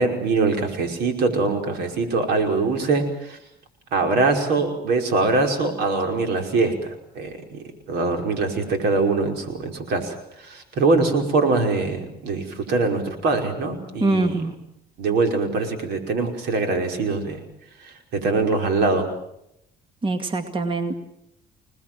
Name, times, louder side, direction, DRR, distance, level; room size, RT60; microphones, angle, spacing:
voice 1, 0.0-3.4 3.9-10.2 10.4-14.4 15.0-17.4 17.8-19.1, right 3 dB, 80° right, 4 dB, 5.2 m, -23 dB
voice 2, 14.0-14.5 20.0-20.9, right 2 dB, 30° right, 7 dB, 2.3 m, -23 dB
28.0 x 19.5 x 7.6 m, 0.79 s
cardioid pair, 110°, 17 cm